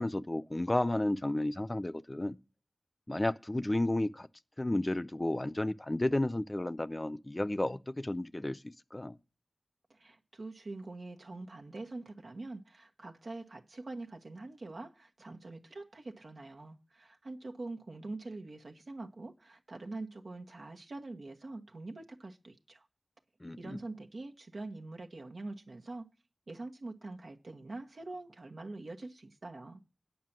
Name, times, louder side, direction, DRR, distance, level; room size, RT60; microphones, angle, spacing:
voice 1, 0.0-2.4 3.1-4.3 4.6-9.1 23.4-23.8, left 1 dB, 25° left, 0.5 m, -32 dB
voice 2, 9.9-22.8 23.6-26.1 26.5-29.8, right 2 dB, 75° right, 1.3 m, -44 dB
9.3 x 5.7 x 7.4 m
wide cardioid pair, 75°, 0 cm